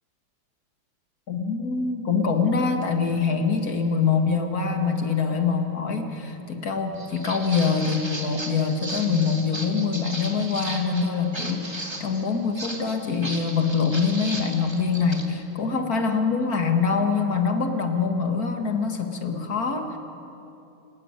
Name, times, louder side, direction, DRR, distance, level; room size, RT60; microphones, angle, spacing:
voice 1, 1.3-20.0, left 5 dB, 45° left, 5 dB, 2.1 m, -24 dB
Walk footsteps, 6.9-15.3, right 1 dB, 15° right, 1.8 m, -36 dB
29.5 x 13.5 x 9.7 m, 2.8 s
omnidirectional pair, 2.3 m